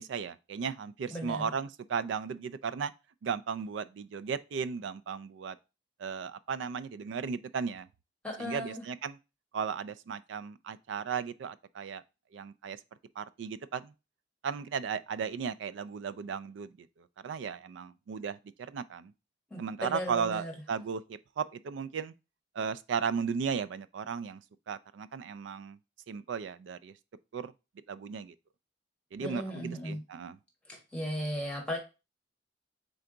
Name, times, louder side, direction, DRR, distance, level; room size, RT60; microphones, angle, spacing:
voice 1, 0.0-2.9 3.2-5.6 6.0-7.9 8.4-9.2 9.5-12.0 12.3-12.8 13.2-13.9 14.4-16.9 17.2-19.1 19.6-22.1 22.6-24.4 24.7-25.8 26.1-26.9 27.3-27.5 27.9-28.3 29.1-30.4, right 6 dB, 80° right, 0.3 m, -35 dB
voice 2, 1.1-1.5 8.2-8.8 19.5-20.5 29.2-30.0 30.7-31.8, equal, 5° left, 1.3 m, -36 dB
3.9 x 3.4 x 3.8 m
head